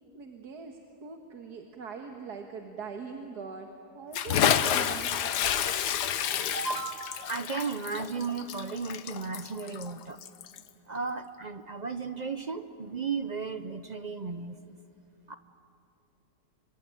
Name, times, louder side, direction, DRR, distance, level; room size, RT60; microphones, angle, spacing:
voice 1, 0.1-5.2, right 5 dB, 70° right, 3 dB, 2.0 m, -42 dB
Bathtub (filling or washing) / Splash splatter, 4.1-10.7, left 9 dB, 75° left, 1.5 m, -29 dB
voice 2, 6.5-10.2 10.9-14.8 15.3-15.4, right 4 dB, 55° right, 10 dB, 0.5 m, -35 dB
26.5 x 24.5 x 9.0 m, 2.8 s
omnidirectional pair, 1.8 m